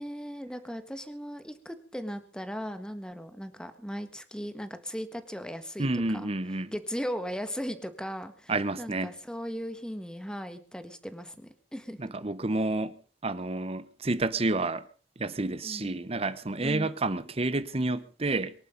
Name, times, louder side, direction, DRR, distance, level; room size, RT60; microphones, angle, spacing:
voice 1, 0.0-6.3 6.7-8.5 8.8-12.1 15.6-15.9 16.6-16.9, equal, 5° left, 1.6 m, -37 dB
voice 2, 5.8-6.7 8.5-9.1 12.0-13.0 13.2-14.8 15.2-18.5, right 2 dB, 35° right, 0.9 m, -29 dB
23.0 x 11.0 x 5.2 m
head